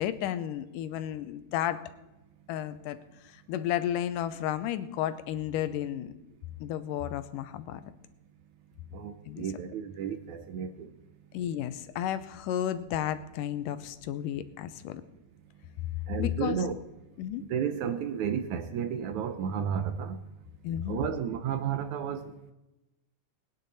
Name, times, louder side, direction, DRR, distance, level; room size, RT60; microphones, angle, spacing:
voice 1, 0.0-1.9 2.5-3.0 3.2-6.1 6.6-7.8 9.3-9.5 11.3-15.0 16.2-16.6 17.2-17.4 20.6-21.0, left 11 dB, 90° left, 12 dB, 2.3 m, -32 dB
voice 2, 8.9-11.0 16.1-16.8 17.4-20.2 20.9-22.5, right 8 dB, 75° right, 10 dB, 1.9 m, -32 dB
21.0 x 10.0 x 4.1 m, 0.97 s
omnidirectional pair, 3.8 m